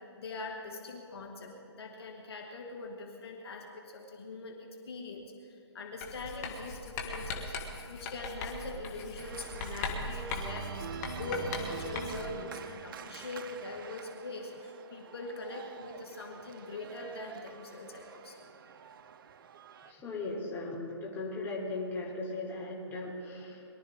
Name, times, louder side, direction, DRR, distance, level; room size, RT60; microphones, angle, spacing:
voice 1, 0.2-4.6 4.9-10.9 11.2-18.5, left 3 dB, 60° left, 1 dB, 2.0 m, -42 dB
Writing, 6.0-12.4, left 3 dB, 35° left, 2.0 m, -39 dB
Organ, 9.2-19.9, right 8 dB, 50° right, 0.6 m, -45 dB
voice 2, 19.8-23.6, left 2 dB, 15° left, -5 dB, 3.3 m, -38 dB
22.5 x 12.5 x 3.6 m, 2.6 s
hypercardioid pair, 140°, 14 cm